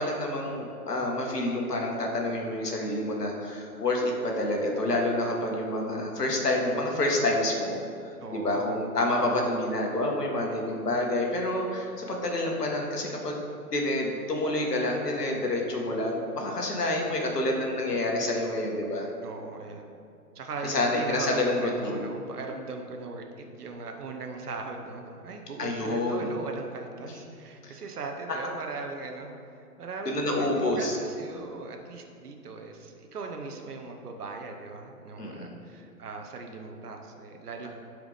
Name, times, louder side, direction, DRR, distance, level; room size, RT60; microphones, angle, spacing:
voice 1, 0.0-7.8 8.0-13.4 13.7-19.1 20.6-22.1 25.6-26.3 27.0-27.1 27.6-27.7 30.1-31.0 35.2-35.6, left 1 dB, 85° left, 0 dB, 1.7 m, -28 dB
voice 2, 8.2-8.8 19.2-19.9 20.3-29.3 29.6-37.7, right 4 dB, 75° right, 3 dB, 1.1 m, -39 dB
12.0 x 4.8 x 3.5 m, 2.5 s
hypercardioid pair, 130°, 46 cm